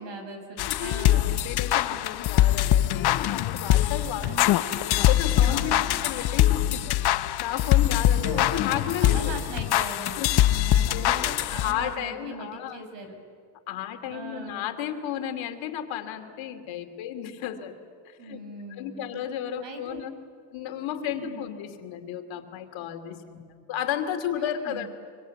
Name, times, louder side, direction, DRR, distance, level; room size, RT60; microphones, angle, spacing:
voice 1, 0.0-1.4 4.2-4.9 5.4-6.0 8.1-8.6 9.0-13.2 14.1-14.7 18.2-19.2 19.6-20.0 21.2-21.6 24.4-24.9, right 3 dB, 65° right, 6 dB, 5.6 m, -40 dB
sound 1, 0.6-11.9, left 13 dB, 55° left, 0.8 m, -23 dB
voice 2, 0.7-4.6 4.8-7.0 7.4-9.4 10.2-10.3 10.9-12.8 13.7-17.7 18.0-18.4 18.8-20.1 20.5-24.9, left 10 dB, 80° left, 6 dB, 2.7 m, -33 dB
25.5 x 25.0 x 8.3 m, 2.1 s
cardioid pair, 150°, 46 cm